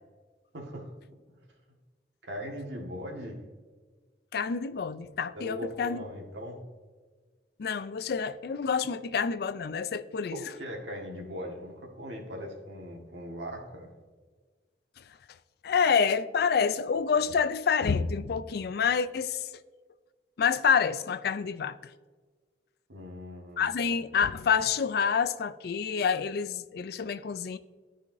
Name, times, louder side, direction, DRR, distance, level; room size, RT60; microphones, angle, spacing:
voice 1, 0.5-0.9 2.2-3.4 5.3-6.6 10.3-13.9 22.9-23.7, equal, 90° right, 1.7 m, -39 dB
voice 2, 4.3-6.0 7.6-10.4 15.6-19.4 20.4-21.8 23.6-27.6, left 6 dB, 60° left, 0.4 m, -27 dB
14.0 x 5.0 x 2.6 m
head